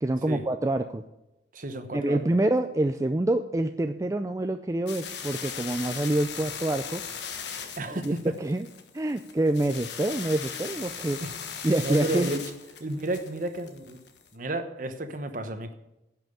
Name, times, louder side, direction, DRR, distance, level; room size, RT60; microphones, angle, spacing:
voice 1, 0.0-1.0 1.9-7.0 7.9-8.7 8.9-11.2 11.6-12.3, right 1 dB, 20° right, 7 dB, 0.4 m, -26 dB
voice 2, 1.5-2.2 7.8-8.0 11.2-11.3 11.8-12.4 12.8-14.0 14.3-15.7, right 1 dB, 45° right, 8 dB, 1.1 m, -32 dB
sound 1, 4.9-14.3, left 7 dB, 75° left, 1.3 m, -38 dB
10.5 x 6.0 x 8.5 m, 0.90 s
head